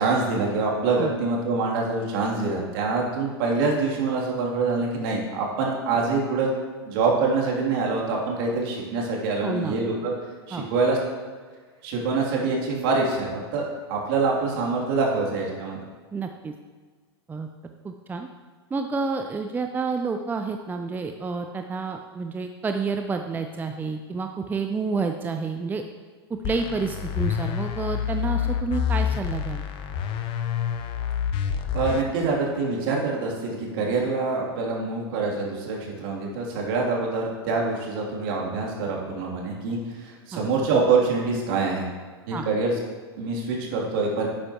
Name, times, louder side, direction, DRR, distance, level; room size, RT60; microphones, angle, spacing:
voice 1, 0.0-6.5 6.8-10.1 10.5-11.0 11.8-15.8 31.7-41.8 42.3-42.7 43.2-44.3, right 4 dB, 55° right, -2 dB, 2.9 m, -25 dB
voice 2, 9.4-9.7 10.5-10.7 16.1-16.5 17.3-17.5 17.8-18.3 18.7-25.8 26.3-29.6 40.3-40.4 42.3-42.4, right 4 dB, 15° right, 6 dB, 0.5 m, -29 dB
sound 1, 26.4-32.0, left 8 dB, 40° left, 0.8 m, -27 dB
11.5 x 8.5 x 3.0 m, 1.5 s
hypercardioid pair, 105°, 14 cm